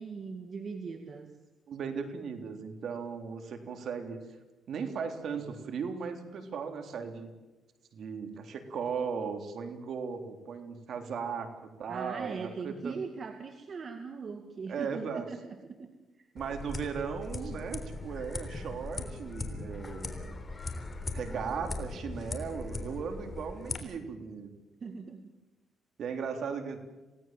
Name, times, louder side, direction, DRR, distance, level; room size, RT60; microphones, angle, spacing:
voice 1, 0.0-1.4 11.9-16.3 24.8-25.3, right 5 dB, 45° right, 6 dB, 2.2 m, -40 dB
voice 2, 1.7-4.2 4.7-7.3 7.9-12.9 14.7-15.3 16.3-20.4 21.0-24.5 26.0-26.8, right 6 dB, 65° right, 6 dB, 3.6 m, -37 dB
sound 1, 16.4-23.8, left 2 dB, 25° left, 3.6 m, -39 dB
27.5 x 18.0 x 7.7 m, 1.1 s
cardioid pair, 90°, 0 cm